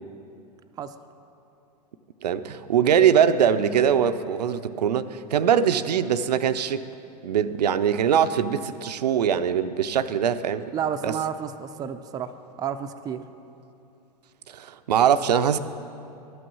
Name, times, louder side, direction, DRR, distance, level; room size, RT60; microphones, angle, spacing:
voice 1, 2.2-6.8 7.2-10.7 11.0-11.1 14.5-15.6, right 8 dB, 80° right, 11 dB, 0.4 m, -22 dB
voice 2, 10.7-12.3 12.6-13.2, right 8 dB, 20° right, 8 dB, 0.4 m, -30 dB
12.5 x 6.3 x 6.0 m, 2.8 s
hypercardioid pair, 100°, 21 cm